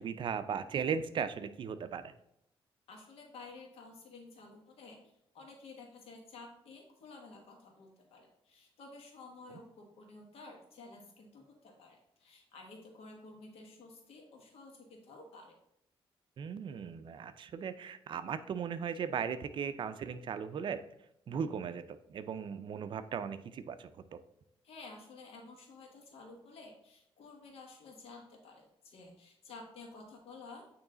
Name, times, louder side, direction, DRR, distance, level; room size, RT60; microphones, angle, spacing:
voice 1, 0.0-2.1 16.4-20.8 21.3-24.2, right 7 dB, 55° right, 11 dB, 0.5 m, -37 dB
voice 2, 2.9-15.5 24.6-30.6, left 3 dB, 85° left, 1 dB, 1.6 m, -52 dB
8.7 x 3.2 x 3.8 m, 0.76 s
cardioid pair, 120°, 10 cm